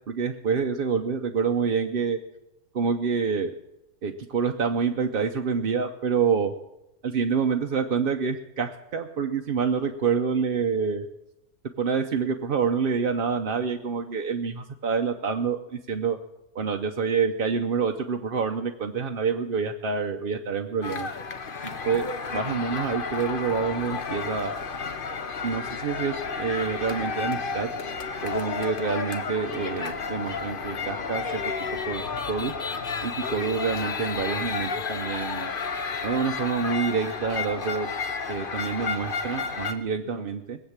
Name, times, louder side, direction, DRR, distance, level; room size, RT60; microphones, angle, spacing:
voice 1, 0.1-2.2 2.7-3.5 4.0-6.5 7.0-11.1 11.8-16.2 16.5-21.1 21.6-24.5 25.4-27.7 28.2-31.5 31.8-32.0 32.3-32.5 33.0-35.5 36.0-37.9 38.3-40.6, right 6 dB, 45° right, 4 dB, 0.8 m, -27 dB
sound 1, 20.8-39.7, left 5 dB, 40° left, 1.0 m, -32 dB
21.0 x 8.0 x 7.4 m, 0.87 s
omnidirectional pair, 1.6 m